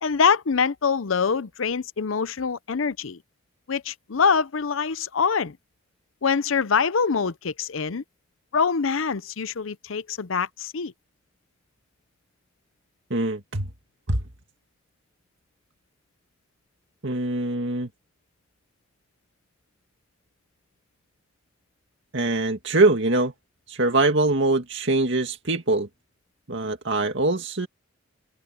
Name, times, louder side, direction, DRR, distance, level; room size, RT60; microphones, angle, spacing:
voice 1, 0.0-3.2 3.7-5.6 6.2-8.0 8.5-10.9, left 5 dB, 80° left, 0.7 m, -24 dB
voice 2, 13.1-13.7 14.1-14.2 17.0-17.9 22.1-23.3 23.7-25.9 26.5-27.7, right 2 dB, 60° right, 2.2 m, -23 dB
head